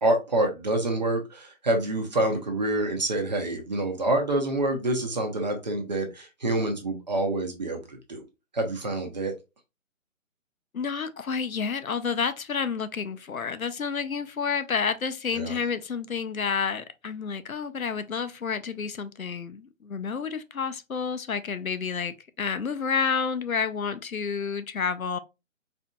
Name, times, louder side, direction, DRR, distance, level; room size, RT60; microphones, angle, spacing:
voice 1, 0.0-8.2 8.5-9.3 15.3-15.6, right 1 dB, 35° right, 0.7 m, -27 dB
voice 2, 10.7-25.2, left 6 dB, 85° left, 0.6 m, -30 dB
4.2 x 2.8 x 2.2 m
figure-of-eight pair, 140°, 41 cm